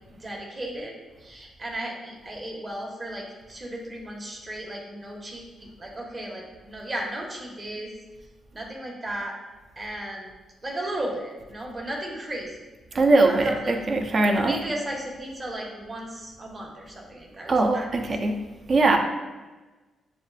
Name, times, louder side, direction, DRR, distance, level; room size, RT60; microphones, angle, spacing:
voice 1, 0.1-7.9 8.5-9.4 9.8-10.3 10.6-12.6 12.9-13.7 14.3-18.1, right 1 dB, 30° right, -1 dB, 1.0 m, -35 dB
voice 2, 12.9-14.6 17.5-18.4 18.7-19.0, right 2 dB, 50° right, 3 dB, 0.5 m, -21 dB
7.0 x 2.4 x 2.3 m, 1.2 s
cardioid pair, 80°, 0 cm